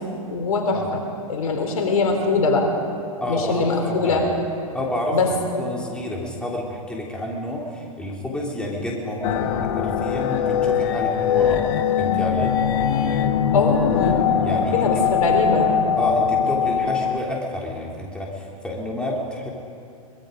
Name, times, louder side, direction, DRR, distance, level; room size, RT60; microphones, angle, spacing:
voice 1, 0.3-1.0 1.3-2.7 3.3-4.2 5.1-5.6 13.5-14.4 14.7-15.7, left 3 dB, 70° left, 3 dB, 3.7 m, -22 dB
voice 2, 3.2-4.3 4.7-5.2 5.6-11.6 12.0-12.6 14.4-15.1 16.0-19.5, left 1 dB, 5° left, -2 dB, 3.4 m, -29 dB
sound 1, 9.2-17.2, left 8 dB, 45° left, 1.4 m, -21 dB
24.0 x 21.0 x 5.2 m, 2.4 s
hypercardioid pair, 115°, 19 cm